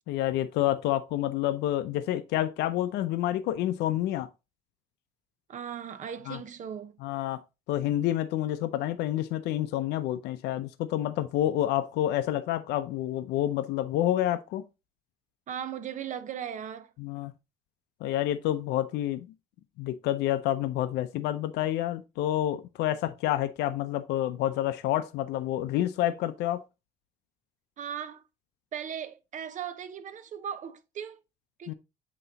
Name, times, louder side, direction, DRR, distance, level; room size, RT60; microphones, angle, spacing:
voice 1, 0.1-4.3 6.3-6.4 7.0-7.4 7.7-14.6 17.0-17.3 18.0-19.3 19.8-26.6 31.7-31.8, left 13 dB, 85° left, 0.6 m, -28 dB
voice 2, 5.5-7.0 15.5-16.9 27.8-28.2 28.7-31.2 31.6-31.7, right 8 dB, 45° right, 0.8 m, -38 dB
7.9 x 3.0 x 4.0 m
cardioid pair, 110°, 17 cm